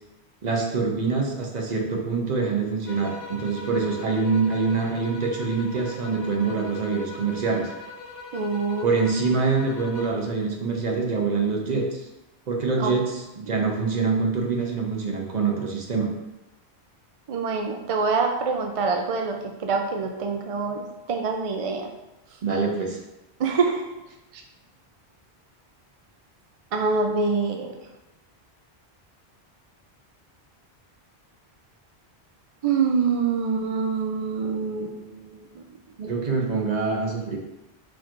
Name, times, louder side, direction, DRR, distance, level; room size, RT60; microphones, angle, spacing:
voice 1, 0.4-7.7 8.8-12.0 12.5-16.1 22.4-23.0 36.0-37.4, right 4 dB, 45° right, 1 dB, 0.8 m, -25 dB
sound 1, 2.9-10.3, left 2 dB, 70° left, 0.8 m, -41 dB
voice 2, 8.3-9.1 12.8-12.9 17.3-21.9 23.4-23.8 26.7-27.7 32.6-35.6, right 4 dB, 65° right, 3 dB, 0.3 m, -25 dB
4.4 x 2.5 x 4.4 m, 0.99 s
omnidirectional pair, 1.1 m